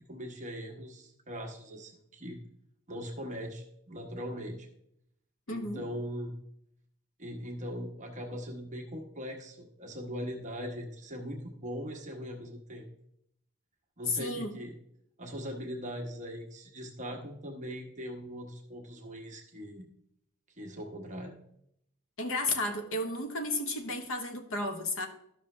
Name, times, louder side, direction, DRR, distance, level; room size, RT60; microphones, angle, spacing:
voice 1, 0.1-2.4 2.9-4.7 5.5-6.3 7.2-12.9 14.0-14.7 15.2-19.8 20.6-21.3, equal, 35° right, 1 dB, 1.1 m, -40 dB
voice 2, 5.5-5.8 14.2-14.5 22.2-25.1, left 2 dB, 65° left, 7 dB, 1.0 m, -33 dB
12.5 x 5.8 x 3.2 m, 0.77 s
head